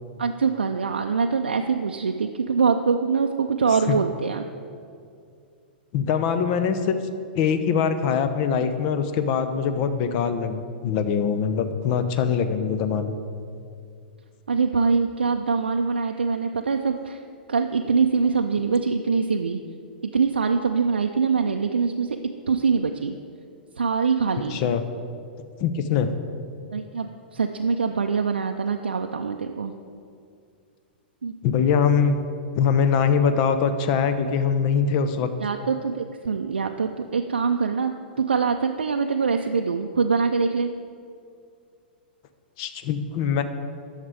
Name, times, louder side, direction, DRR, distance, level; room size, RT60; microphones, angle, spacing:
voice 1, 0.2-4.4 14.5-17.2 17.5-19.6 20.0-22.2 22.5-23.2 23.8-24.6 26.7-29.7 31.2-31.3 35.4-40.7, right 5 dB, 80° right, 4 dB, 0.4 m, -24 dB
voice 2, 5.9-7.0 7.3-13.2 24.5-24.8 25.6-26.1 31.4-32.2 32.5-35.3 42.6-43.4, left 6 dB, 45° left, 9 dB, 0.8 m, -23 dB
11.0 x 6.5 x 4.9 m, 2.4 s
figure-of-eight pair, 105°, 5 cm